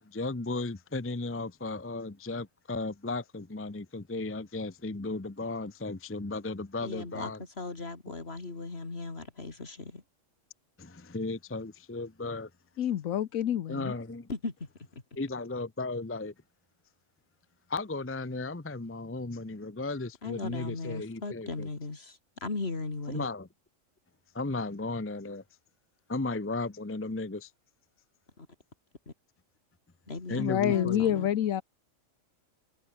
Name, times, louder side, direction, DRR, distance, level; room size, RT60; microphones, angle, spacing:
voice 1, 0.0-7.4 10.8-12.5 13.7-14.3 15.2-16.3 17.7-21.7 23.1-23.5 24.3-25.4 26.1-27.5 30.3-31.2, left 3 dB, 10° left, 0.7 m, -35 dB
voice 2, 6.8-10.0 14.3-15.0 20.2-23.3 28.4-28.5 29.1-29.2 30.1-31.3, left 3 dB, 50° left, 3.1 m, -38 dB
voice 3, 12.8-13.9 30.4-31.6, left 10 dB, 85° left, 1.2 m, -27 dB
omnidirectional pair, 1.4 m